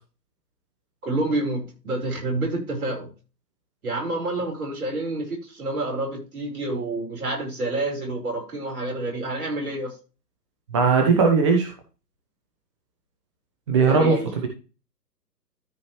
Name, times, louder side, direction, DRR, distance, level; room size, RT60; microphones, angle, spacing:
voice 1, 1.0-3.1 3.8-9.9 13.9-14.3, right 2 dB, 55° right, 0 dB, 4.8 m, -28 dB
voice 2, 10.7-11.7 13.7-14.2, right 5 dB, 20° right, 3 dB, 0.9 m, -18 dB
13.5 x 5.0 x 3.1 m, 0.33 s
figure-of-eight pair, 135°, 50 cm